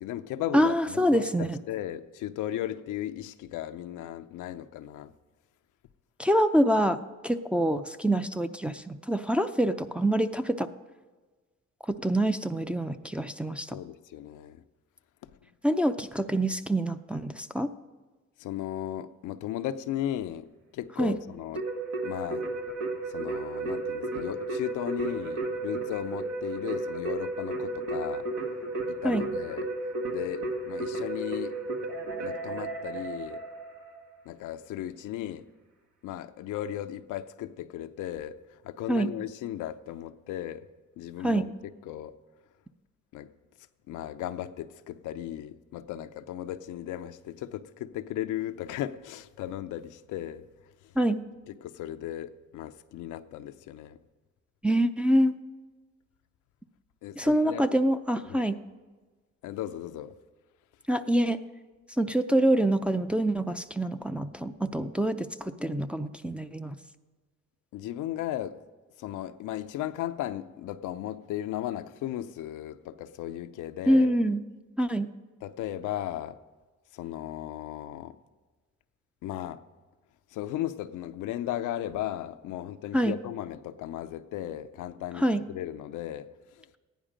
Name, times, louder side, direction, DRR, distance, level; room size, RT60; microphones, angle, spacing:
voice 1, 0.0-5.1 13.7-14.6 15.2-15.3 18.4-20.5 20.7-21.7 22.0-22.5 23.1-28.3 28.9-29.7 30.1-31.5 32.2-33.4 34.3-35.4 36.0-40.7 41.0-41.5 41.9-42.1 43.1-43.3 43.9-50.5 51.6-54.0 57.0-57.7 58.3-58.4 59.4-60.1 67.7-68.6 69.0-74.2 75.4-76.4 76.9-78.2 79.2-79.6 80.3-86.3 86.6-86.7, left 12 dB, 85° left, 10 dB, 0.6 m, -36 dB
voice 2, 0.5-1.6 6.2-10.7 11.9-13.8 15.6-17.7 21.0-21.2 29.0-29.3 38.9-39.1 41.2-41.4 51.0-51.2 54.6-55.4 57.2-58.6 60.9-61.4 62.0-66.8 73.9-74.4 74.8-75.1 82.9-83.2 85.2-85.4, right 1 dB, 5° right, 6 dB, 0.4 m, -26 dB
Keyboard (musical), 21.6-34.0, right 2 dB, 75° right, 1.8 m, -33 dB
14.5 x 10.0 x 5.1 m, 1.3 s
cardioid pair, 90°, 30 cm